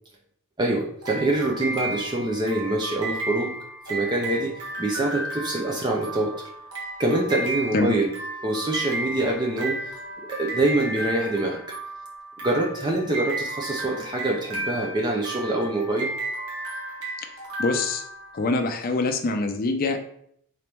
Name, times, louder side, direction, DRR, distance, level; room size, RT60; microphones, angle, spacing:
voice 1, 0.6-3.5 3.9-6.3 7.0-8.1 8.4-10.0 10.4-11.6 12.4-16.1, right 2 dB, 20° right, -1 dB, 0.4 m, -25 dB
sound 1, 1.0-18.7, right 2 dB, 85° right, 1.3 m, -34 dB
voice 2, 17.6-18.0 18.3-20.0, left 3 dB, 40° left, 5 dB, 0.4 m, -24 dB
3.9 x 2.9 x 3.4 m, 0.67 s
head